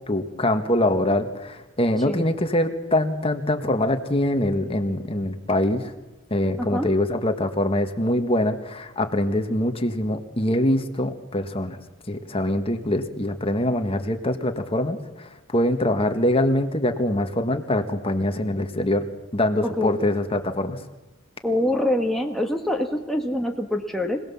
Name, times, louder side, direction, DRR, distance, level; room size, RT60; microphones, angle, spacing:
voice 1, 0.1-5.9 6.3-11.8 12.1-19.1 19.3-20.8, left 1 dB, 25° left, 7 dB, 1.6 m, -24 dB
voice 2, 19.6-20.0 21.4-24.2, left 1 dB, ahead, 2 dB, 1.3 m, -25 dB
25.5 x 18.5 x 7.2 m, 1.1 s
head